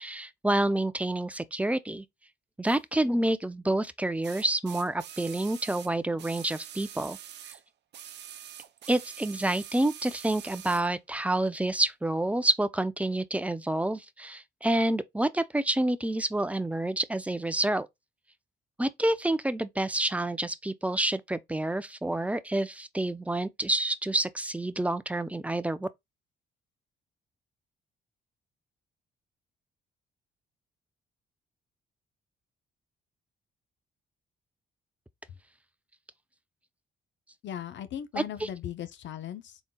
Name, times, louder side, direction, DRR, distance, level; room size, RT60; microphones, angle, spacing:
voice 1, 0.0-2.0 2.6-7.2 8.9-17.9 18.8-25.9 38.2-38.5, right 1 dB, 5° right, 0.5 m, -28 dB
sound 1, 2.6-2.8 4.2-7.6 7.9-10.9 11.8-11.9, right 10 dB, 60° right, 0.6 m, -45 dB
voice 2, 37.4-39.6, left 10 dB, 65° left, 0.7 m, -38 dB
4.0 x 3.7 x 2.3 m
cardioid pair, 90°, 20 cm